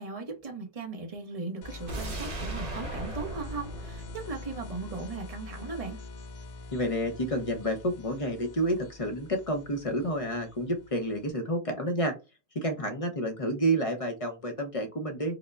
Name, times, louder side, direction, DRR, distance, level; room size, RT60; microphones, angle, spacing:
voice 1, 0.0-6.0, right 3 dB, 35° right, 0.9 m, -38 dB
sound 1, 1.6-11.3, left 3 dB, 75° left, 0.8 m, -45 dB
sound 2, 1.9-5.0 5.3-5.4, right 2 dB, 55° right, 1.1 m, -38 dB
voice 2, 6.7-12.1 12.5-15.4, right 1 dB, 35° left, 0.8 m, -29 dB
5.0 x 2.1 x 2.3 m
omnidirectional pair, 1.1 m